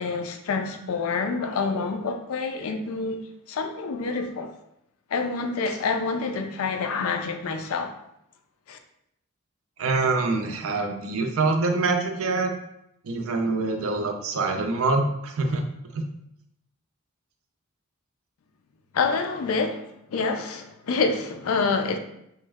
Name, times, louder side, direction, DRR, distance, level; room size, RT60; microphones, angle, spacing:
voice 1, 0.0-4.5 5.1-7.9 8.7-8.8 18.9-22.0, left 4 dB, 70° left, 0.4 m, -27 dB
voice 2, 9.8-12.5 13.0-15.6 15.9-16.0, right 3 dB, 70° right, 0.5 m, -25 dB
3.0 x 2.1 x 3.4 m
head